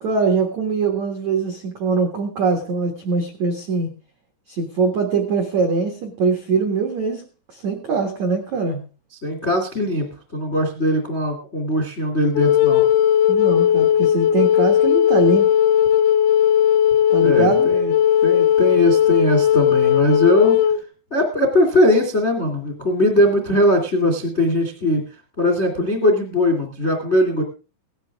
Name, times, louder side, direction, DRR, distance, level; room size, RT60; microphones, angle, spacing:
voice 1, 0.0-3.9 4.5-7.2 7.5-8.8 13.3-15.5 17.1-17.7, right 4 dB, 75° right, 4 dB, 1.6 m, -22 dB
voice 2, 9.2-12.8 17.2-17.9 18.2-20.6 21.1-25.0 25.4-27.4, left 1 dB, 45° left, 4 dB, 0.8 m, -20 dB
Wind instrument woodwind instrument, 12.4-20.8, left 10 dB, 80° left, 3.2 m, -17 dB
17.0 x 12.5 x 3.5 m, 0.33 s
omnidirectional pair, 5.9 m